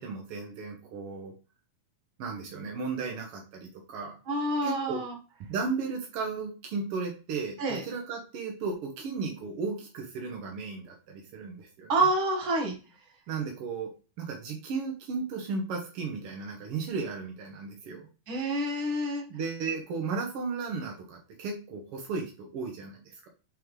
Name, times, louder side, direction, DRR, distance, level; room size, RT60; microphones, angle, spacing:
voice 1, 0.0-1.3 2.2-4.2 4.6-5.0 5.5-12.0 13.3-13.9 14.2-18.1 19.3-23.3, right 4 dB, 75° right, 1 dB, 1.3 m, -35 dB
voice 2, 4.3-5.1 7.6-7.8 11.9-12.7 18.3-19.2, right 2 dB, 50° right, 1 dB, 1.8 m, -27 dB
8.4 x 3.7 x 3.1 m, 0.33 s
omnidirectional pair, 4.1 m